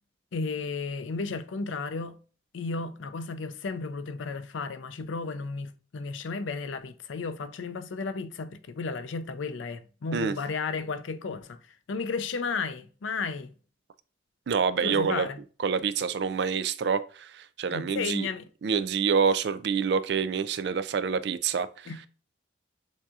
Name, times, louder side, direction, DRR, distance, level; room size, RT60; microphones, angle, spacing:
voice 1, 0.3-2.2 2.5-11.6 11.9-13.5 14.8-15.4 17.7-18.4 21.9-22.1, left 4 dB, 85° left, 0.5 m, -33 dB
voice 2, 14.5-15.3 15.6-18.3 18.6-21.9, right 6 dB, 60° right, 0.3 m, -27 dB
7.0 x 2.7 x 2.4 m
head